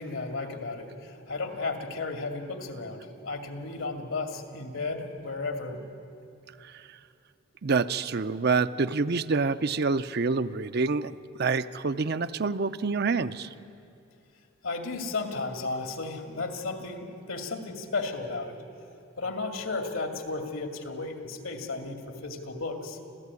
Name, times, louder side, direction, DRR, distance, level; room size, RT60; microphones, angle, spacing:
voice 1, 0.0-5.9 14.6-18.6 19.2-23.0, left 3 dB, 75° left, 5 dB, 2.5 m, -34 dB
voice 2, 7.6-13.5, right 4 dB, 50° right, 11 dB, 0.6 m, -27 dB
26.5 x 15.5 x 9.7 m, 2.5 s
head